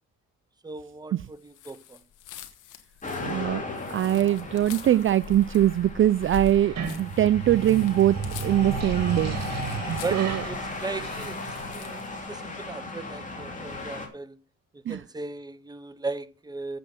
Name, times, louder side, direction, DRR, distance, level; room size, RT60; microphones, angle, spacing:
voice 1, 0.6-2.0 10.0-11.4 11.7-12.0 12.3-14.4 14.7-16.8, right 3 dB, 15° right, 0.8 m, -37 dB
sound 1, 1.5-12.1, left 6 dB, 90° left, 1.3 m, -43 dB
sound 2, 3.0-14.1, left 3 dB, 25° left, 2.9 m, -37 dB
voice 2, 3.2-3.6 3.9-8.2 8.4-9.4 9.9-10.4 14.9-15.0, right 12 dB, 45° right, 0.4 m, -22 dB
sound 3, 6.5-11.8, right 6 dB, 60° right, 2.3 m, -34 dB
7.7 x 7.5 x 6.0 m
cardioid pair, 90°, 30 cm